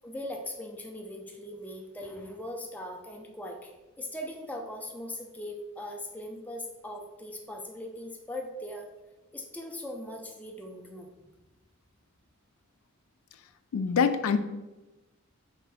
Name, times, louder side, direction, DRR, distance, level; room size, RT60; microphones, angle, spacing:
voice 1, 0.0-8.9 9.3-11.1, left 1 dB, 5° left, 1 dB, 0.4 m, -40 dB
voice 2, 13.7-14.4, left 6 dB, 80° left, 9 dB, 0.3 m, -24 dB
3.7 x 3.0 x 4.6 m, 1.1 s
head